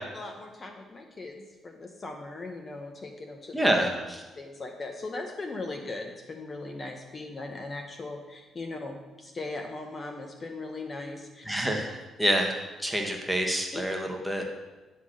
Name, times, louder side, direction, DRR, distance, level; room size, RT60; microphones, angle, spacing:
voice 1, 0.1-3.6 4.4-11.4 13.7-13.8, left 2 dB, 35° left, 3 dB, 0.8 m, -39 dB
voice 2, 3.5-4.2 11.4-12.5 12.8-14.4, equal, 5° right, 1 dB, 1.3 m, -27 dB
9.4 x 3.8 x 6.3 m, 1.2 s
cardioid pair, 90°, 0 cm